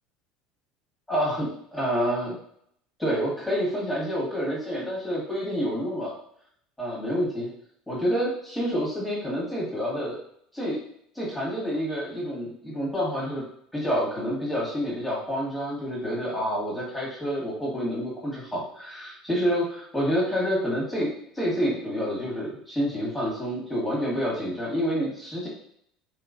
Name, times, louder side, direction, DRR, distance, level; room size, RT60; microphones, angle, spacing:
voice 1, 1.1-2.4 3.0-6.1 6.8-7.5 7.9-10.2 10.5-10.8 11.1-13.4 13.7-25.5, equal, 5° left, -7 dB, 1.3 m, -28 dB
3.2 x 2.9 x 2.5 m, 0.68 s
supercardioid pair, 105°, 0 cm